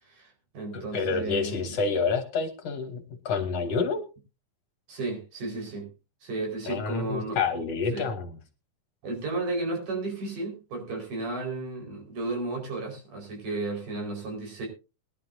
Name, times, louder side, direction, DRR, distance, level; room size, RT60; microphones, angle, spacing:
voice 1, 0.0-1.8 4.9-5.9 6.2-7.4 7.9-8.0 9.0-14.7, right 3 dB, 90° right, 1 dB, 6.3 m, -33 dB
voice 2, 0.7-4.1 6.7-8.3, left 4 dB, 60° left, 7 dB, 1.9 m, -28 dB
21.5 x 11.5 x 2.7 m, 0.31 s
omnidirectional pair, 3.6 m